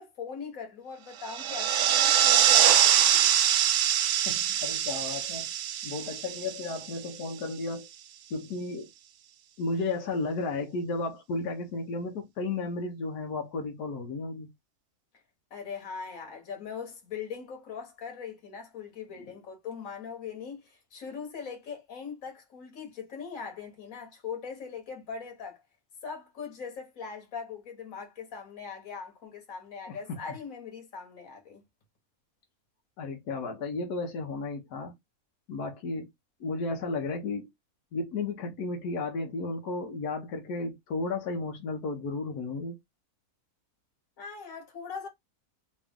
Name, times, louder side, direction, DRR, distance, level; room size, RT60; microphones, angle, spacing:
voice 1, 0.0-3.3 15.5-25.6 26.0-31.6 44.2-45.1, left 6 dB, 60° left, 1.7 m, -41 dB
sound 1, 1.2-7.1, right 10 dB, 65° right, 0.8 m, -24 dB
voice 2, 4.3-5.5 5.8-7.9 8.3-8.9 9.6-14.5 19.2-19.3 29.9-30.0 33.0-34.9 35.5-36.1 36.4-37.5 37.9-42.8, left 3 dB, 90° left, 1.4 m, -33 dB
3.1 x 3.0 x 3.5 m
omnidirectional pair, 1.6 m